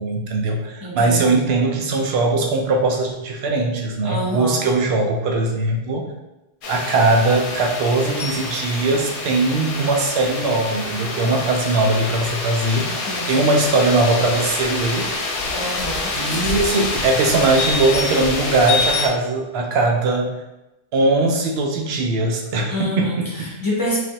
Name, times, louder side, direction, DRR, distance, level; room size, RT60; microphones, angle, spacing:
voice 1, 0.0-6.1 6.7-13.0 13.3-15.1 16.1-20.3 20.9-23.5, right 2 dB, 75° right, 2 dB, 0.8 m, -20 dB
voice 2, 0.8-1.3 4.0-4.7 13.1-13.5 15.5-16.1 22.7-24.0, equal, 25° left, -7 dB, 0.7 m, -27 dB
sound 1, 6.6-19.1, left 3 dB, 65° left, 0.7 m, -26 dB
3.2 x 2.4 x 2.8 m, 0.97 s
omnidirectional pair, 1.1 m